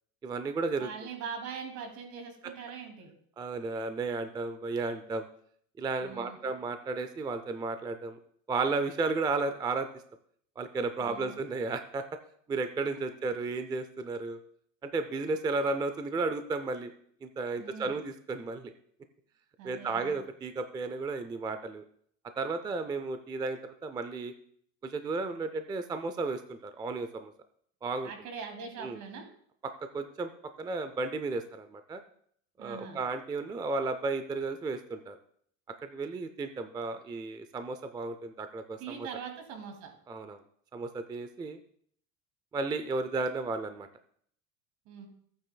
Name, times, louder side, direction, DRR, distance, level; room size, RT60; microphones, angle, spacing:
voice 1, 0.2-0.9 2.4-2.5 3.4-5.3 5.8-8.2 8.5-9.9 10.6-12.0 12.5-14.4 14.8-16.9 17.2-18.7 19.6-21.8 22.4-24.3 24.8-27.3 27.8-28.1 28.8-29.0 29.6-30.3 30.6-32.0 32.6-35.2 35.8-39.1 40.1-40.4 40.7-41.6 42.5-43.9, right 3 dB, 15° right, 9 dB, 0.3 m, -33 dB
voice 2, 0.8-3.1 6.0-6.5 11.0-11.4 17.6-18.0 19.6-20.2 28.0-29.3 32.6-33.0 38.8-39.9 44.9-45.1, right 6 dB, 60° right, 4 dB, 2.3 m, -42 dB
14.5 x 8.8 x 2.2 m, 0.63 s
cardioid pair, 140°, 33 cm